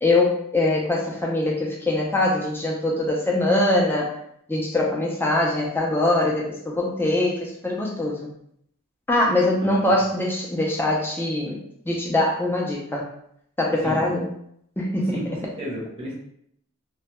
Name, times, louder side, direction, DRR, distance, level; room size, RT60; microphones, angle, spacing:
voice 1, 0.0-4.1 4.5-8.3 9.1-11.6 11.9-13.0 13.6-14.3 14.8-15.2, left 2 dB, 10° left, -2 dB, 0.3 m, -23 dB
voice 2, 15.1-16.1, equal, 30° right, -6 dB, 0.6 m, -33 dB
2.1 x 2.1 x 2.9 m, 0.71 s
head